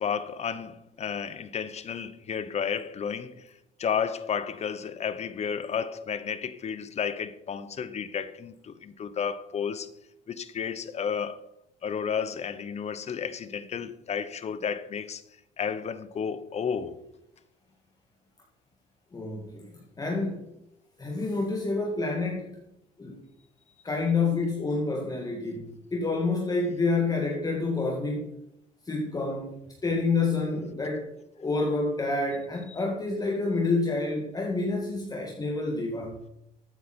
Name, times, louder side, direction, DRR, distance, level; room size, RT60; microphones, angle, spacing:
voice 1, 0.0-3.5 3.8-9.9 10.3-11.5 11.8-15.2 15.6-17.0, left 7 dB, 40° left, 1.0 m, -32 dB
voice 2, 19.1-20.5 21.0-22.6 23.0-23.2 23.8-28.4 28.8-31.1 31.4-36.2, left 3 dB, 20° left, 2.3 m, -28 dB
14.5 x 9.1 x 4.5 m
cardioid pair, 110°, 17 cm